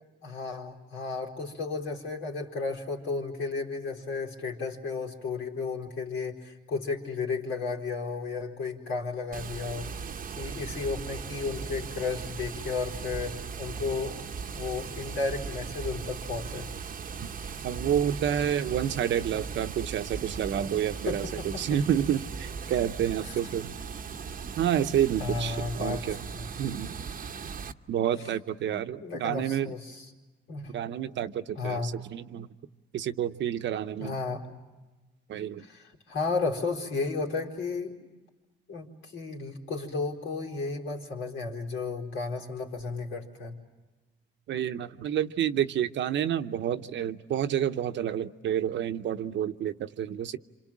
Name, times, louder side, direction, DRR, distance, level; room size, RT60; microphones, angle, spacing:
voice 1, 0.2-14.2 14.5-16.7 21.1-21.8 23.2-23.4 25.2-26.0 26.3-26.5 28.2-28.3 29.0-30.1 30.5-30.8 31.5-31.9 34.0-34.4 35.6-38.0 38.7-43.5, left 4 dB, 80° left, 4.4 m, -33 dB
Water, 9.3-27.7, right 6 dB, 45° right, 0.9 m, -38 dB
voice 2, 17.6-23.7 24.6-26.3 26.6-27.0 27.9-29.7 30.7-32.5 32.9-34.2 35.3-35.7 44.5-50.4, right 10 dB, 65° right, 0.9 m, -29 dB
28.5 x 27.0 x 7.5 m
cardioid pair, 90°, 20 cm